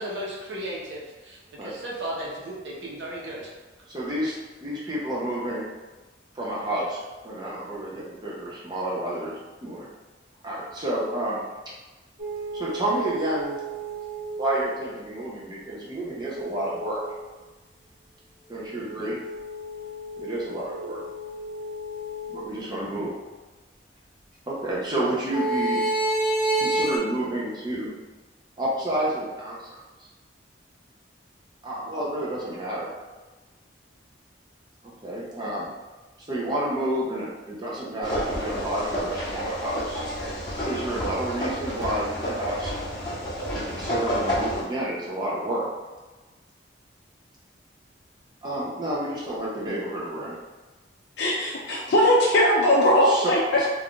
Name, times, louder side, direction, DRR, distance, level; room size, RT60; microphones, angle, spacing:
voice 1, 0.0-3.5, right 1 dB, 75° right, -4 dB, 0.8 m, -35 dB
voice 2, 3.9-5.7 6.3-9.9 10.4-11.4 12.5-13.6 14.4-17.0 18.5-19.2 20.2-21.0 22.3-23.1 24.5-25.8 26.6-27.9 28.6-29.7 31.6-32.9 35.0-35.7 36.3-40.0 40.7-42.7 43.7-45.7 48.4-50.4 52.4-52.5 53.0-53.7, right 1 dB, 25° right, -6 dB, 0.5 m, -30 dB
sound 1, 12.2-14.7 16.3-17.2 18.5-22.6 25.3-27.0, right 2 dB, 50° right, 1.1 m, -30 dB
sound 2, 38.0-44.6, equal, 20° left, 0.8 m, -30 dB
voice 3, 51.2-53.4, equal, 60° left, -4 dB, 0.4 m, -20 dB
2.4 x 2.3 x 3.6 m, 1.2 s
head